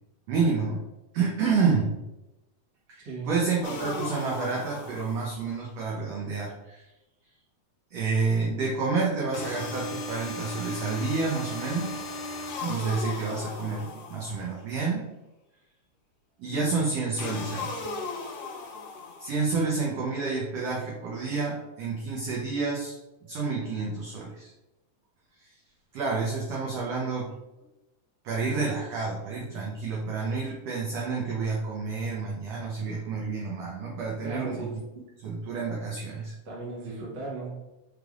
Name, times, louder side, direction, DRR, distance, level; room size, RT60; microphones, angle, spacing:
voice 1, 0.3-0.8 1.1-2.0 2.9-6.9 7.9-11.9 12.6-15.1 16.4-17.7 19.2-23.0 23.3-24.5 25.4-25.5 25.9-27.3 28.2-34.7 35.2-36.3, right 4 dB, 75° right, -4 dB, 1.4 m, -29 dB
sound 1, 3.6-5.6 9.3-14.6 17.2-19.6, left 3 dB, 80° left, 1.4 m, -37 dB
voice 2, 34.2-34.8 36.4-37.5, right 3 dB, 50° right, -5 dB, 1.3 m, -36 dB
5.0 x 3.3 x 2.4 m, 0.98 s
omnidirectional pair, 3.6 m